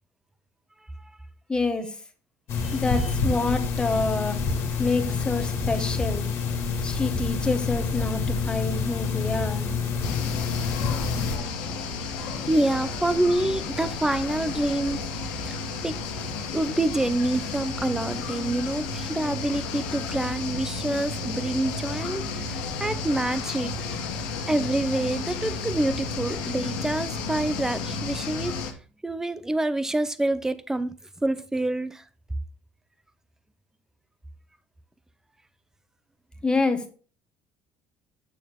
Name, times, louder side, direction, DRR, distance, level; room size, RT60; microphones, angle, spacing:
voice 1, 1.5-1.9 2.7-4.4 4.8-6.3 6.8-9.6 36.4-36.9, left 3 dB, 15° left, 1.4 m, -27 dB
sound 1, 2.5-11.4, left 5 dB, 60° left, 2.0 m, -27 dB
sound 2, 10.0-28.7, left 4 dB, 90° left, 1.4 m, -32 dB
voice 2, 12.2-15.0 15.4-15.6 15.8-16.0 16.5-23.7 24.5-28.6 29.0-32.0, right 1 dB, 10° right, 0.7 m, -27 dB
7.0 x 6.2 x 3.7 m
supercardioid pair, 90°, 5 cm